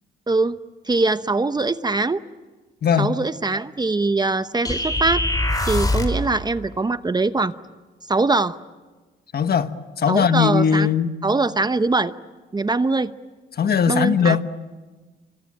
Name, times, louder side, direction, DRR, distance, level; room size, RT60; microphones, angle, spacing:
voice 1, 0.3-0.6 0.9-2.2 3.0-5.2 5.7-7.5 8.1-8.6 10.1-10.9 11.2-12.1 12.5-13.1 13.9-14.4, right 3 dB, 20° right, 12 dB, 0.9 m, -22 dB
voice 2, 2.8-3.1 9.3-11.1 13.6-14.5, left 7 dB, 50° left, 10 dB, 1.5 m, -19 dB
sound 1, 4.6-6.3, left 1 dB, 20° left, 3.9 m, -22 dB
27.0 x 25.0 x 8.9 m, 1.3 s
cardioid pair, 90°, 20 cm